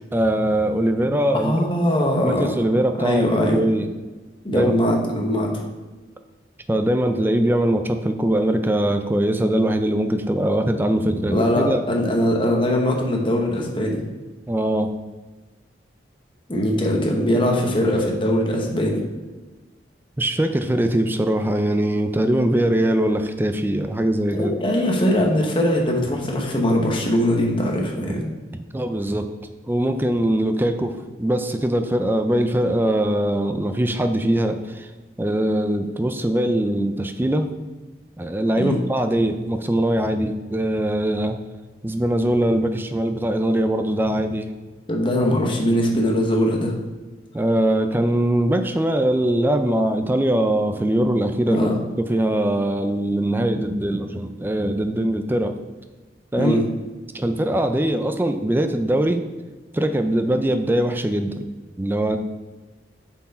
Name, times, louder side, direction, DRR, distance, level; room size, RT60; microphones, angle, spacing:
voice 1, 0.1-1.6 2.2-3.9 4.5-4.7 6.7-11.8 14.5-14.9 20.2-24.6 28.5-29.3 29.6-30.9 31.2-34.9 35.2-37.5 38.2-41.4 41.8-44.5 47.3-51.7 52.0-55.5 56.3-56.6 57.1-59.2 59.7-61.5 61.8-62.2, right 1 dB, 10° right, 7 dB, 0.4 m, -21 dB
voice 2, 1.3-2.5 2.9-3.6 4.4-5.6 11.3-14.0 16.5-19.0 24.3-28.3 38.6-38.8 44.9-46.7 51.5-51.8 56.4-56.6, left 1 dB, 30° left, 0 dB, 1.1 m, -21 dB
7.0 x 4.6 x 4.2 m, 1.3 s
head